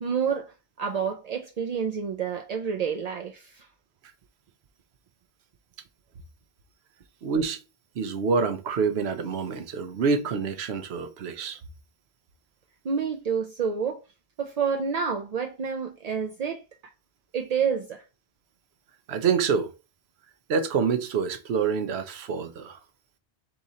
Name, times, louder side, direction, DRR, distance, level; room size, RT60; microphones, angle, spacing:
voice 1, 0.0-3.7 12.8-14.0 14.4-16.6 17.3-18.0, right 6 dB, 60° right, 0.4 m, -29 dB
voice 2, 7.2-7.6 8.0-11.6 19.1-19.7 20.5-22.8, right 5 dB, 75° right, 0.9 m, -26 dB
3.7 x 2.9 x 4.1 m
omnidirectional pair, 1.1 m